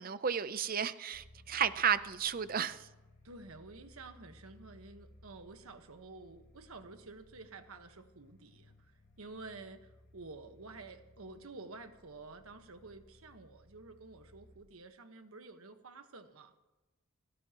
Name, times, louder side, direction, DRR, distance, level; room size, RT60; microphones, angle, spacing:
voice 1, 0.0-2.8, right 8 dB, 40° right, 14 dB, 0.6 m, -33 dB
sound 1, 1.1-14.6, left 1 dB, 50° left, 3.3 m, -61 dB
voice 2, 3.2-16.6, right 3 dB, 80° right, 7 dB, 1.3 m, -51 dB
29.5 x 12.0 x 3.0 m, 1.1 s
head